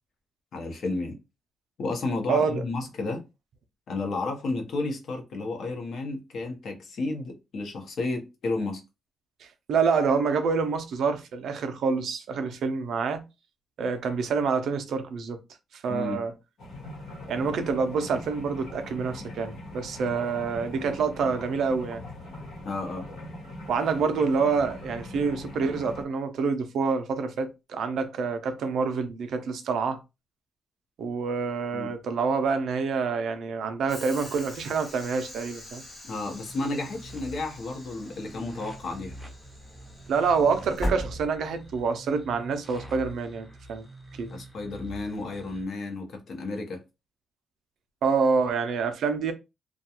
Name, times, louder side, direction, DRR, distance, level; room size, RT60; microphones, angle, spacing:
voice 1, 0.5-1.2 1.8-3.2 3.9-8.8 15.9-16.2 22.6-23.1 31.7-31.9 36.1-39.2 44.3-46.8, left 3 dB, 55° left, 0.7 m, -32 dB
voice 2, 2.3-2.6 9.4-13.2 13.8-15.4 15.7-16.3 17.3-22.0 23.7-30.0 31.0-35.8 40.1-43.8 44.2-44.3 48.0-49.3, right 5 dB, 65° right, 0.4 m, -27 dB
sound 1, 16.6-26.0, left 1 dB, 75° left, 1.0 m, -42 dB
Train / Sliding door, 33.9-41.9, equal, 25° left, 1.0 m, -39 dB
sound 2, 36.1-45.6, right 1 dB, 5° right, 0.6 m, -46 dB
2.3 x 2.2 x 2.8 m
wide cardioid pair, 170°, 0 cm